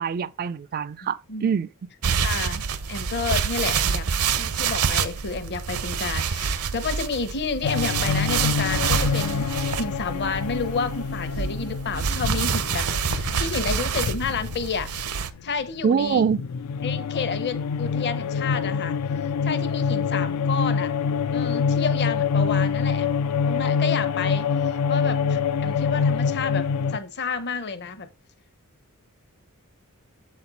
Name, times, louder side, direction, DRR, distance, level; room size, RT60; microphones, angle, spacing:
voice 1, 0.0-1.7 15.8-16.4, right 6 dB, 40° right, 0.3 m, -24 dB
sound 1, 2.0-15.3, right 6 dB, 80° right, 0.7 m, -27 dB
voice 2, 2.2-9.4 9.8-14.9 15.4-16.2 16.8-19.0 19.4-20.9 21.3-23.2 23.5-28.1, left 4 dB, 50° left, 0.9 m, -30 dB
sound 2, 7.6-15.8 16.1-27.0, left 6 dB, 80° left, 0.4 m, -26 dB
7.5 x 4.3 x 4.1 m
head